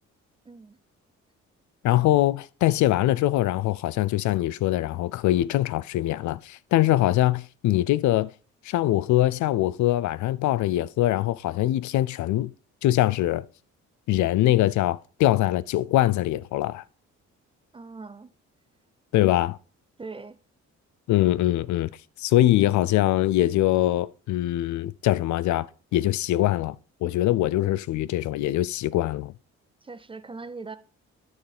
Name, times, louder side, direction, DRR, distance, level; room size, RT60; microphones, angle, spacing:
voice 1, 0.5-0.8 17.7-18.3 20.0-20.4 29.8-30.8, right 4 dB, 20° right, 0.4 m, -40 dB
voice 2, 1.8-8.3 8.6-12.5 12.8-13.4 14.1-16.8 19.1-19.6 21.1-21.9 22.2-25.7 25.9-26.8 27.0-29.3, left 15 dB, 70° left, 0.4 m, -23 dB
9.5 x 6.3 x 3.4 m
cardioid pair, 90°, 30 cm